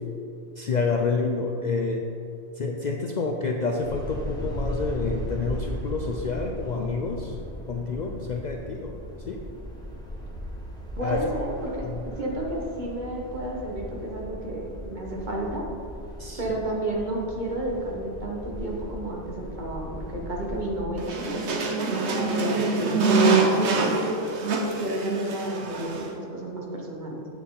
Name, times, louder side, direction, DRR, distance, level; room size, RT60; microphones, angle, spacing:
voice 1, 0.6-2.0 2.6-7.3 7.7-8.9 9.3-9.4 11.0-11.2 16.2-16.4, left 4 dB, 55° left, 2 dB, 0.5 m, -28 dB
sound 1, 3.8-20.8, equal, 5° left, 1.2 m, -37 dB
voice 2, 11.0-11.8 12.2-15.6 16.4-21.6 22.2-23.9 24.8-27.2, right 1 dB, 45° right, -2 dB, 1.3 m, -31 dB
sound 2, 21.0-26.1, right 3 dB, 75° right, 1.2 m, -24 dB
8.6 x 6.3 x 3.7 m, 2.7 s
omnidirectional pair, 1.2 m